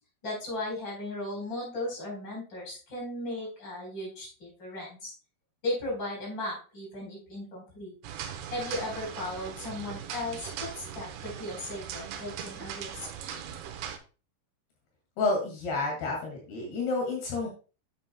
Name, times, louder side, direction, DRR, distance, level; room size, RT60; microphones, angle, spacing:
voice 1, 0.2-5.1 5.6-7.9 8.5-13.1, left 1 dB, 25° left, -3 dB, 4.6 m, -36 dB
sound 1, 8.0-14.0, right 8 dB, 80° right, 2.8 m, -40 dB
voice 2, 15.2-17.5, left 3 dB, 70° left, -1 dB, 4.0 m, -30 dB
9.9 x 7.6 x 2.2 m, 0.35 s
omnidirectional pair, 4.8 m